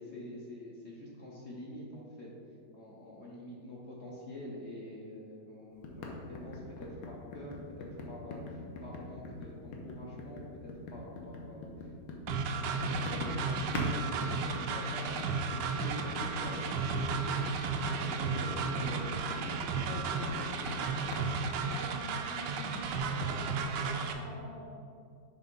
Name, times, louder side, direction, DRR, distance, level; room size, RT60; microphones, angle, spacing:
voice 1, 0.0-2.3 2.7-11.9 12.3-13.9 14.3-17.4 17.8-20.9, left 1 dB, 55° left, -4 dB, 0.7 m, -46 dB
sound 1, 5.8-13.9 14.2-21.2, left 3 dB, 75° left, 1.5 m, -42 dB
sound 2, 12.3-24.1, right 4 dB, 75° right, 1.1 m, -34 dB
voice 2, 21.5-24.6, equal, 35° right, -3 dB, 0.4 m, -47 dB
6.7 x 3.4 x 5.2 m, 2.3 s
omnidirectional pair, 2.0 m